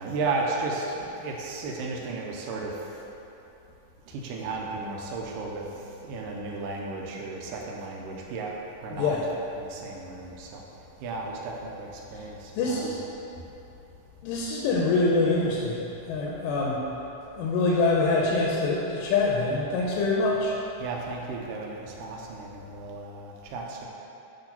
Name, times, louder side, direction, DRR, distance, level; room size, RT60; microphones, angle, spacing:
voice 1, 0.0-3.0 4.1-10.6 11.0-13.0 16.0-16.1 20.8-23.9, right 3 dB, 90° right, -1 dB, 2.3 m, -34 dB
voice 2, 8.9-9.2 12.1-12.2 12.5-13.0 14.2-15.8 16.1-16.8 17.3-20.5, left 3 dB, 85° left, -3 dB, 2.4 m, -25 dB
8.9 x 3.0 x 5.7 m, 2.9 s
omnidirectional pair, 3.8 m